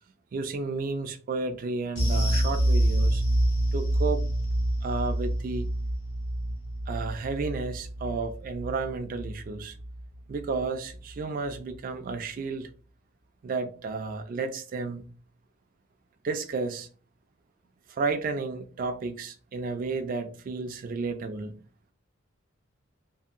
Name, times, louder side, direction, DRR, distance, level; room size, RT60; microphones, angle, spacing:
voice 1, 0.3-3.2 3.7-4.2 4.8-5.7 6.9-9.8 10.3-12.7 13.4-15.1 16.2-16.9 17.9-21.5, right 4 dB, 45° right, 0.3 m, -32 dB
sound 1, 2.0-10.6 10.9-11.1 11.5-11.6, right 1 dB, 70° left, 1.2 m, -27 dB
2.7 x 2.5 x 2.4 m
head